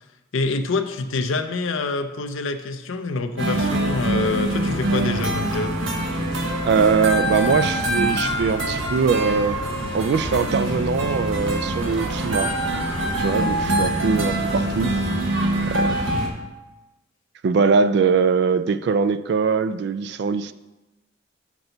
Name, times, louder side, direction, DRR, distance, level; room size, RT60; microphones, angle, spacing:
voice 1, 0.3-5.8, left 3 dB, 75° left, 7 dB, 0.5 m, -26 dB
sound 1, 3.4-16.3, right 1 dB, 70° right, 1.1 m, -24 dB
voice 2, 6.6-9.6 9.9-12.5 13.2-15.0 15.7-16.0 17.4-20.5, right 5 dB, 55° right, 13 dB, 0.3 m, -21 dB
6.6 x 6.1 x 3.9 m, 1.1 s
head